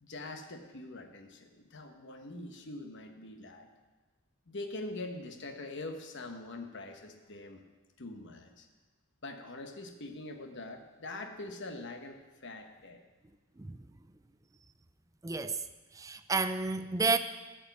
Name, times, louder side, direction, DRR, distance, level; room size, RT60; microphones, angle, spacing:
voice 1, 0.0-3.7 4.5-7.6 8.0-8.7 9.2-13.0, left 2 dB, 55° left, 4 dB, 1.2 m, -43 dB
voice 2, 15.2-15.6 15.9-17.2, right 4 dB, 15° right, 10 dB, 0.4 m, -31 dB
13.0 x 5.3 x 8.2 m, 1.3 s
head